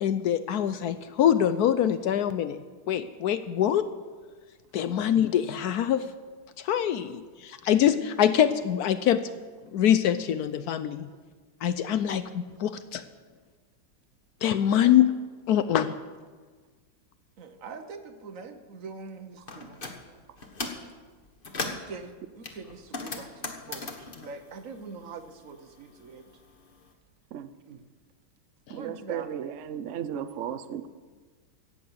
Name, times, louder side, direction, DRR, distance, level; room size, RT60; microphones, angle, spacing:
voice 1, 0.0-2.6 2.9-3.9 4.7-6.1 6.6-9.2 9.7-11.1 11.6-13.0 14.4-15.1 15.5-15.9, left 10 dB, 75° left, 12 dB, 0.9 m, -24 dB
voice 2, 17.4-19.8 20.6-20.7 21.6-26.3 27.7-27.8 28.7-29.3, right 4 dB, 55° right, 8 dB, 1.0 m, -43 dB
sound 1, 19.5-20.0 20.4-20.9 21.2-21.9 22.4-25.4 25.6-26.8, left 3 dB, 30° left, 1.2 m, -37 dB
voice 3, 28.7-30.9, right 9 dB, 75° right, 12 dB, 0.6 m, -35 dB
14.0 x 8.7 x 7.8 m, 1.4 s
omnidirectional pair, 2.2 m